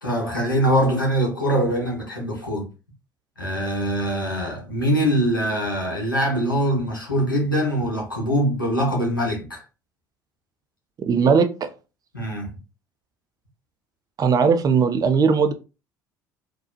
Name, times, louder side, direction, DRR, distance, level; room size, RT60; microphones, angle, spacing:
voice 1, 0.0-2.7 3.4-9.6 12.1-12.6, equal, 90° left, 1.1 m, -23 dB
voice 2, 11.1-11.7 14.2-15.5, right 5 dB, 35° right, 0.6 m, -18 dB
4.0 x 2.7 x 2.7 m
figure-of-eight pair, 60°, 11 cm